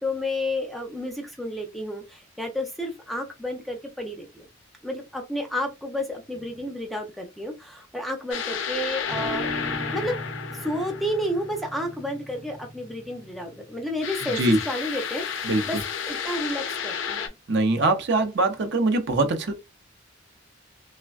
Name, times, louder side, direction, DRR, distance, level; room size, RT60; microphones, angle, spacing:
voice 1, 0.0-4.5 4.8-9.5 9.9-10.2 10.5-15.8 16.1-17.3, left 1 dB, ahead, 0.4 m, -31 dB
sound 1, 8.3-11.7 14.0-17.3, left 7 dB, 70° left, 0.5 m, -32 dB
sound 2, 9.0-14.3, equal, 85° right, 1.0 m, -37 dB
voice 2, 17.5-19.5, right 2 dB, 60° right, 0.6 m, -22 dB
3.4 x 2.1 x 2.3 m
head